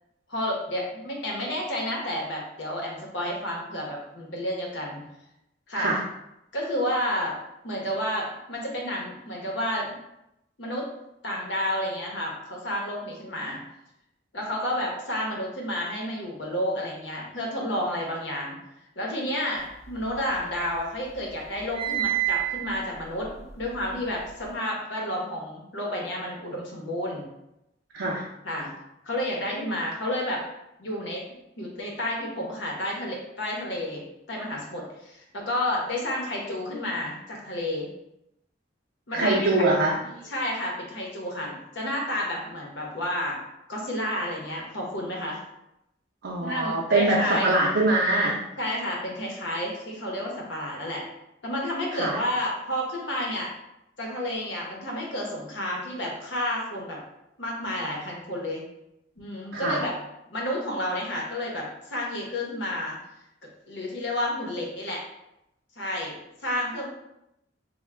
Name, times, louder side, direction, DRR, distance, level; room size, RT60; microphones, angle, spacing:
voice 1, 0.3-5.0 5.7-6.0 6.5-7.3 7.6-9.9 10.6-10.9 11.2-13.6 14.3-18.6 19.0-23.3 23.6-27.2 28.4-28.7 29.0-30.4 30.8-31.2 31.6-37.9 39.1-39.5 40.2-43.4 43.7-45.4 46.4-47.5 48.6-51.0 51.4-53.5 54.0-57.0 57.4-58.6 59.2-59.9 60.3-63.0 63.7-65.0 65.8-66.9, left 1 dB, 85° left, -2 dB, 1.0 m, -30 dB
sound 1, 19.7-20.8 21.1-24.5, right 15 dB, 35° right, 0.6 m, -31 dB
voice 2, 27.9-28.2 39.1-39.9 46.2-48.4 52.0-52.2 59.5-59.9, right 2 dB, 90° right, -3 dB, 0.6 m, -23 dB
3.5 x 2.3 x 3.3 m, 0.86 s
head